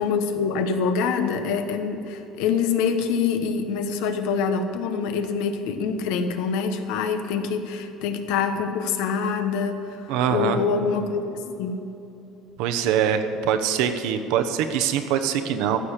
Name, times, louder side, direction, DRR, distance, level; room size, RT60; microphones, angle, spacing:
voice 1, 0.0-11.3 11.6-11.8, left 5 dB, 75° left, 7 dB, 1.2 m, -25 dB
voice 2, 10.1-10.6 12.6-15.8, right 8 dB, 75° right, 7 dB, 1.1 m, -23 dB
14.5 x 6.9 x 9.9 m, 2.9 s
cardioid pair, 150°, 0 cm